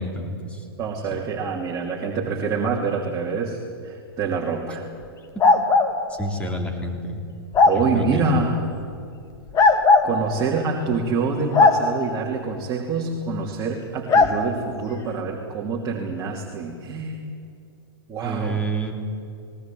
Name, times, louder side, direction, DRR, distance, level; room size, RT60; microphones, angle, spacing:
voice 1, 0.0-0.6 6.1-7.2 7.7-8.4 18.2-19.0, right 1 dB, 10° left, 2 dB, 3.4 m, -29 dB
voice 2, 0.8-4.8 7.7-8.6 10.0-17.2 18.1-18.6, right 4 dB, 25° right, -1 dB, 2.9 m, -26 dB
sound 1, 5.4-5.9 7.5-7.8 9.5-10.1 11.5-11.8 14.1-14.3, left 3 dB, 25° left, 2.1 m, -15 dB
20.0 x 18.5 x 9.1 m, 2.4 s
hypercardioid pair, 115°, 13 cm